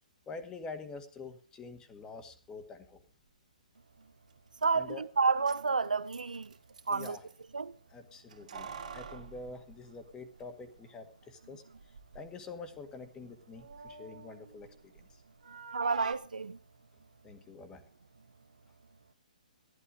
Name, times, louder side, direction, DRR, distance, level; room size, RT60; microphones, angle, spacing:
voice 1, 0.3-3.0 4.7-5.0 6.9-7.2 7.9-11.6 12.1-15.2 17.2-17.9, left 4 dB, 15° left, 1.9 m, -46 dB
Keys jangling, 4.3-4.4 4.6-4.7 5.3-7.4 8.3-10.5 10.8-10.9 11.7-12.3 12.6-15.1 15.4-16.1, right 6 dB, 65° right, 2.4 m, -46 dB
voice 2, 4.6-6.5 6.9-7.2 7.5-7.7 15.7-16.6, right 4 dB, 85° right, 0.7 m, -30 dB
14.0 x 11.5 x 5.1 m
hypercardioid pair, 135°, 4 cm